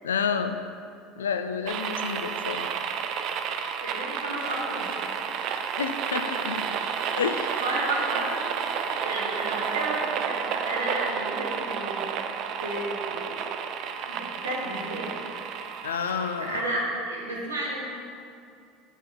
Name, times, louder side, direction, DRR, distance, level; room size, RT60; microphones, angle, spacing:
voice 1, 0.0-0.6 1.2-2.7 5.8-6.7 7.1-7.6 15.8-16.6, left 6 dB, 80° left, 9 dB, 0.4 m, -29 dB
sound 1, 1.7-16.8, right 7 dB, 55° right, 0.4 m, -31 dB
voice 2, 3.8-5.7 7.6-8.3 8.7-12.1 12.6-13.3 14.1-15.2 16.4-17.9, right 1 dB, 90° right, -5 dB, 1.5 m, -32 dB
7.9 x 5.4 x 3.7 m, 2.4 s
figure-of-eight pair, 70°, 0 cm